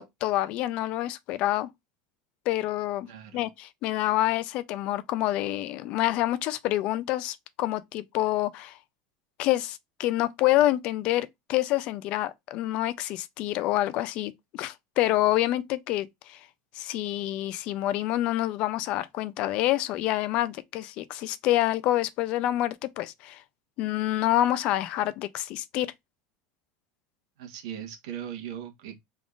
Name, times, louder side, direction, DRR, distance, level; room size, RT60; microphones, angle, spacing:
voice 1, 0.0-1.7 2.5-3.1 3.3-8.8 9.4-16.4 16.8-23.4 23.8-25.9, left 15 dB, 40° left, 0.4 m, -27 dB
voice 2, 3.1-3.4 27.4-28.9, right 10 dB, 75° right, 1.4 m, -39 dB
3.7 x 3.6 x 2.4 m
supercardioid pair, 170°, 3 cm